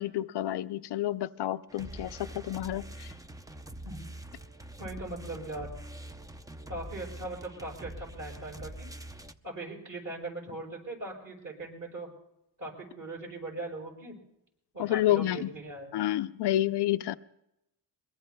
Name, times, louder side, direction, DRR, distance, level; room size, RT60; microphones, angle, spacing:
voice 1, 0.0-3.1 14.8-15.5 15.9-17.2, left 14 dB, 65° left, 0.5 m, -29 dB
sound 1, 1.7-9.3, right 1 dB, 10° right, 0.5 m, -44 dB
voice 2, 4.8-5.7 6.7-8.9 9.4-12.1 12.6-14.2 14.7-15.9, right 2 dB, 45° right, 7.0 m, -40 dB
24.0 x 22.0 x 2.2 m
cardioid pair, 105°, 44 cm